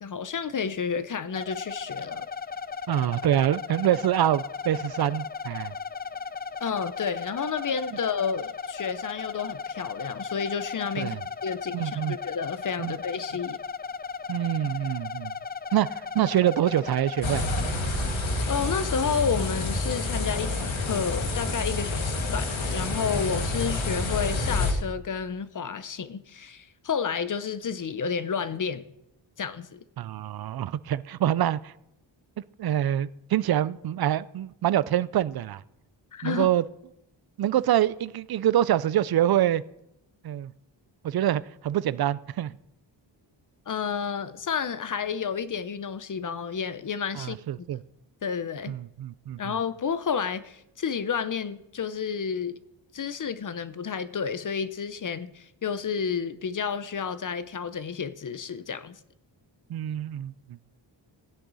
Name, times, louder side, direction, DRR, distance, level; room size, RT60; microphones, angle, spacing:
voice 1, 0.0-2.3 6.6-11.2 11.4-13.6 18.0-18.1 18.5-28.8 29.4-29.8 36.1-36.5 43.7-47.4 48.2-48.7 49.4-52.6 52.9-59.0, left 6 dB, 45° left, 0.7 m, -31 dB
sound 1, 1.3-17.7, left 5 dB, 25° left, 0.4 m, -36 dB
voice 2, 2.9-5.8 11.0-11.2 11.7-12.2 12.8-12.9 14.3-15.3 15.7-17.5 30.0-31.7 32.6-35.6 36.2-36.6 37.4-39.6 40.2-40.5 41.0-42.6 47.1-47.8 48.7-49.6 59.7-60.6, right 11 dB, 55° right, 0.5 m, -25 dB
sound 2, 17.2-24.7, left 2 dB, 75° left, 2.0 m, -28 dB
16.5 x 10.0 x 4.0 m
wide cardioid pair, 100°, 46 cm